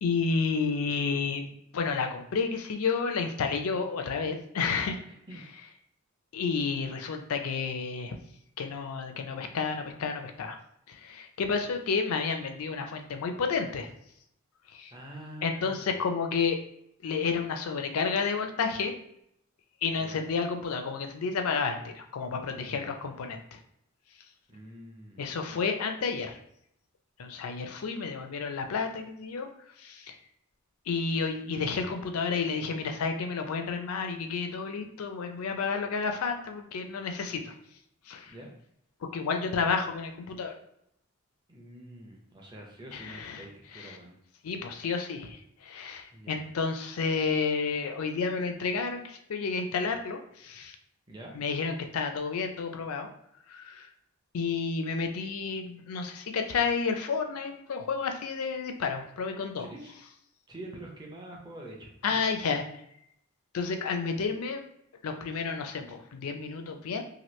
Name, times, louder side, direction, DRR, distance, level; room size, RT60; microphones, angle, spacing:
voice 1, 0.0-5.0 6.3-8.2 8.6-10.6 10.9-13.9 14.7-14.9 15.4-16.6 17.0-18.9 19.8-23.6 25.2-26.4 27.2-29.5 29.8-30.2 30.9-37.5 38.1-38.3 39.1-40.5 42.9-43.4 43.7-44.0 44.4-50.8 51.3-53.1 53.5-53.9 54.3-59.7 62.0-62.6 63.5-64.6 65.0-67.0, left 5 dB, 85° left, 5 dB, 0.4 m, -31 dB
voice 2, 5.1-5.5 11.7-11.8 14.9-16.0 20.0-20.3 22.5-23.1 24.5-25.2 38.3-38.5 41.5-44.2 46.1-46.5 51.1-51.3 59.6-59.9 60.5-62.2, right 1 dB, 20° right, -1 dB, 0.6 m, -46 dB
2.9 x 2.4 x 3.1 m, 0.74 s
head